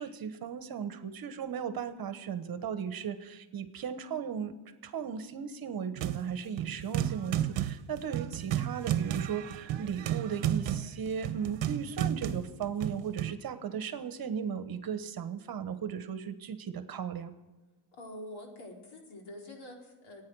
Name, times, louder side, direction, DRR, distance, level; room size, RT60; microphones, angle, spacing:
voice 1, 0.0-4.5 4.8-17.3, right 7 dB, 45° right, 10 dB, 1.3 m, -36 dB
sound 1, 6.0-6.3 6.6-13.3, right 11 dB, 60° right, 1.0 m, -32 dB
voice 2, 17.9-20.2, left 1 dB, 70° left, 0 dB, 4.5 m, -46 dB
25.5 x 9.6 x 4.8 m, 1.1 s
cardioid pair, 125°, 50 cm